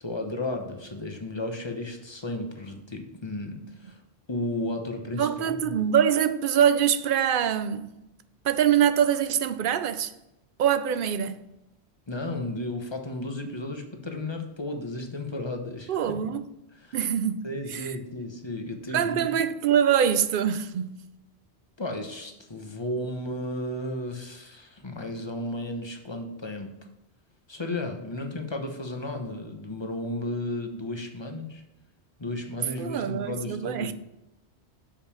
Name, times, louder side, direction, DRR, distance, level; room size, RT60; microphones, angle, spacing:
voice 1, 0.0-4.0 4.3-5.8 12.1-16.1 16.8-17.0 17.4-19.2 21.8-26.8 27.5-31.6 32.2-33.9, left 1 dB, 25° left, 1.0 m, -34 dB
voice 2, 5.2-8.0 8.4-10.1 10.6-11.4 15.9-16.4 16.9-18.0 18.9-21.1 32.8-33.9, right 9 dB, 60° right, 0.7 m, -24 dB
7.1 x 5.3 x 5.6 m
omnidirectional pair, 1.1 m